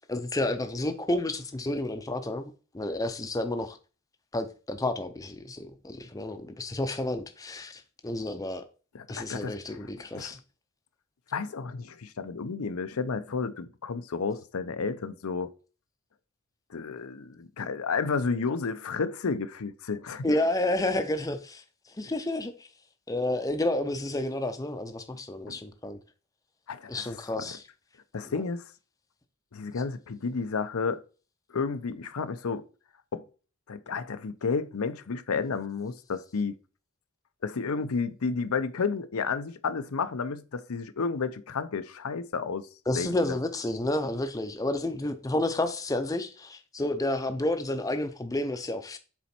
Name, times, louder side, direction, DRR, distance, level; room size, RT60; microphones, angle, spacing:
voice 1, 0.1-3.8 4.3-8.6 9.1-10.4 20.2-21.6 22.0-22.7 23.1-26.0 26.9-27.6 28.3-28.4 42.9-49.0, left 1 dB, 15° left, 0.6 m, -30 dB
voice 2, 8.9-9.6 10.2-10.3 11.3-15.5 16.7-20.3 25.5-25.6 26.7-27.2 27.5-27.6 28.1-28.6 29.5-31.0 31.5-32.6 33.1-33.2 33.7-36.5 37.4-42.7 42.9-43.4, left 5 dB, 85° left, 0.6 m, -31 dB
7.1 x 4.2 x 4.4 m
head